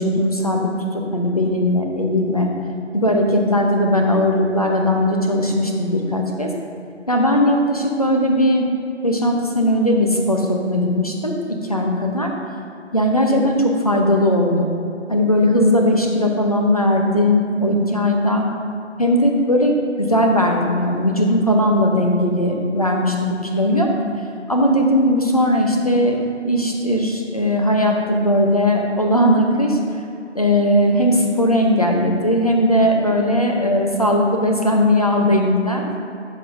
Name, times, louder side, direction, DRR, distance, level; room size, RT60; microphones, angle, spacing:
voice 1, 0.0-2.5 2.9-6.5 7.1-8.7 9.0-12.3 12.9-14.7 15.1-18.4 19.0-23.9 24.5-29.8 30.3-35.8, left 1 dB, 30° left, 1 dB, 0.7 m, -18 dB
12.5 x 7.4 x 2.5 m, 2.6 s
figure-of-eight pair, 180°, 36 cm